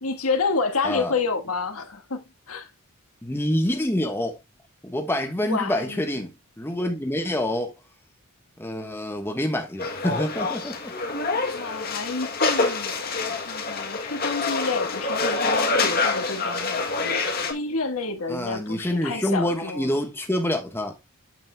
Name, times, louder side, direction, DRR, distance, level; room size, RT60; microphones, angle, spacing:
voice 1, 0.0-2.7 5.4-6.0 11.5-17.2 17.5-19.9, left 4 dB, 75° left, 1.5 m, -29 dB
voice 2, 3.2-4.4 4.8-7.7 8.6-10.9 18.3-21.0, left 1 dB, 10° left, 1.2 m, -27 dB
sound 1, 9.8-17.5, left 3 dB, 45° left, 1.8 m, -26 dB
9.2 x 7.5 x 2.3 m
head